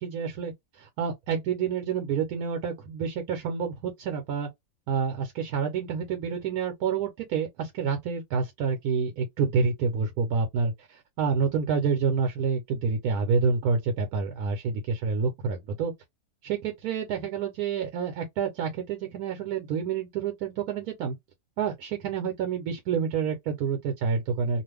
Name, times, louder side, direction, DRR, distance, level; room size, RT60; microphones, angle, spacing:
voice 1, 0.0-4.5 4.9-15.9 16.4-21.2 21.6-24.6, right 5 dB, 80° right, 1.1 m, -28 dB
2.5 x 2.4 x 3.3 m
omnidirectional pair, 1.6 m